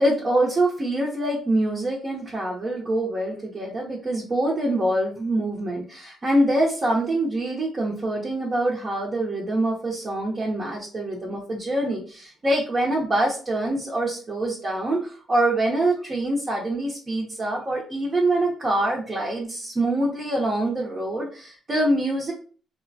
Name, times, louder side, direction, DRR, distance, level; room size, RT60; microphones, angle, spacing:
voice 1, 0.0-22.3, right 1 dB, 30° right, -4 dB, 0.7 m, -25 dB
3.0 x 2.1 x 2.6 m, 0.40 s
cardioid pair, 90°, 0 cm